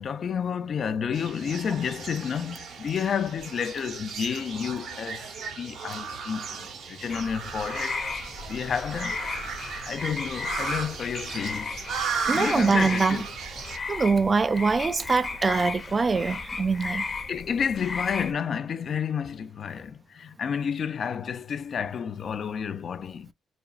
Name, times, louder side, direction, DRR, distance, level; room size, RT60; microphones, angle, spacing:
voice 1, 0.0-5.3 5.6-8.0 8.5-9.2 9.9-11.8 12.3-13.3 17.3-23.3, left 7 dB, 55° left, 0.5 m, -30 dB
sound 1, 1.1-13.8, right 5 dB, 70° right, 1.2 m, -36 dB
sound 2, 7.1-18.3, left 4 dB, 35° left, 0.9 m, -35 dB
voice 2, 12.3-13.2 13.9-17.0, right 4 dB, 30° right, 0.4 m, -23 dB
5.0 x 2.3 x 2.4 m
cardioid pair, 90°, 0 cm